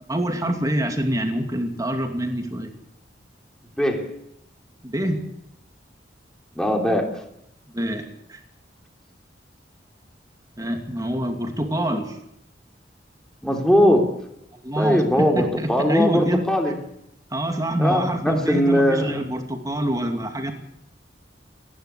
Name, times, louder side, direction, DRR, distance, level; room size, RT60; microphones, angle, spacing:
voice 1, 0.1-2.7 4.8-5.2 7.7-8.4 10.6-12.2 14.5-16.4 17.3-20.5, right 1 dB, 20° right, 4 dB, 2.6 m, -26 dB
voice 2, 3.8-4.2 6.6-7.2 13.4-14.2 14.8-16.8 17.8-19.2, equal, 5° left, 2 dB, 3.4 m, -20 dB
28.0 x 11.5 x 8.5 m, 0.76 s
head